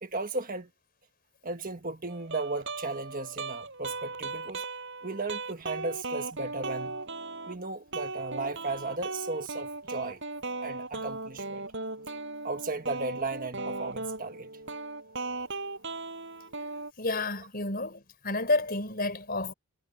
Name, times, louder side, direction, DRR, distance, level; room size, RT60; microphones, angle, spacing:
voice 1, 0.0-0.7 1.4-4.6 5.0-7.0 7.5-10.2 10.6-11.6 12.4-14.5, right 3 dB, 40° right, 1.5 m, -35 dB
sound 1, 2.1-7.6 7.9-16.9, right 3 dB, 55° right, 7.3 m, -37 dB
voice 2, 17.0-19.5, left 2 dB, 40° left, 5.1 m, -30 dB
head